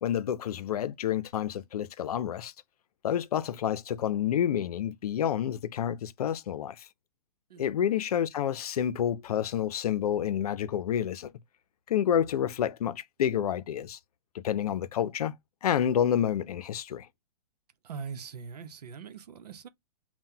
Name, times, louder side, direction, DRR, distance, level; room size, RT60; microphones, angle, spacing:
voice 1, 0.0-2.5 3.0-6.9 7.6-11.3 11.9-14.0 14.3-15.3 15.6-17.1, left 9 dB, 70° left, 0.6 m, -29 dB
voice 2, 17.8-19.7, right 6 dB, 80° right, 0.8 m, -42 dB
5.7 x 2.3 x 2.7 m
hypercardioid pair, 155°, 20 cm